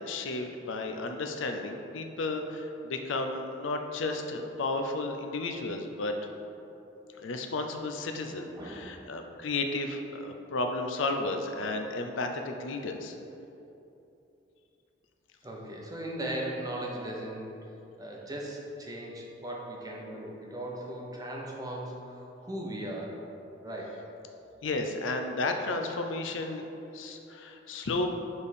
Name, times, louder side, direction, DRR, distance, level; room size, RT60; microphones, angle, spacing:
voice 1, 0.0-6.1 7.2-13.1 24.6-26.7 26.9-28.1, left 2 dB, 90° left, 5 dB, 0.5 m, -33 dB
voice 2, 8.6-9.1 15.4-17.7 18.0-23.2 23.6-24.0, right 1 dB, 20° right, -2 dB, 0.8 m, -38 dB
7.0 x 3.4 x 4.2 m, 2.9 s
head